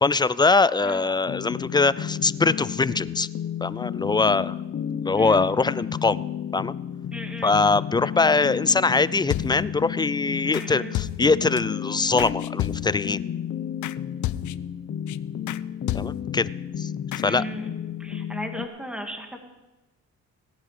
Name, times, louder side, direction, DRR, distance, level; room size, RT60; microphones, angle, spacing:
voice 1, 0.0-3.3 3.6-4.5 5.0-6.2 6.5-6.7 7.4-13.2 15.9-16.5 16.8-16.9 17.2-17.4, left 3 dB, 15° left, 18 dB, 0.4 m, -22 dB
sound 1, 1.3-18.7, left 9 dB, 50° left, 0.9 m, -32 dB
voice 2, 7.1-7.5 10.4-11.0 17.2-17.7 18.0-19.4, equal, 5° right, 4 dB, 2.1 m, -36 dB
sound 2, 9.3-9.8 10.5-10.7 10.9-11.6 12.2-13.1 13.8-14.0 14.2-14.8 15.1-15.2 15.5-15.6 15.9-16.4 17.1-17.3, left 15 dB, 75° left, 0.5 m, -31 dB
18.0 x 10.5 x 5.0 m, 1.1 s
cardioid pair, 90°, 30 cm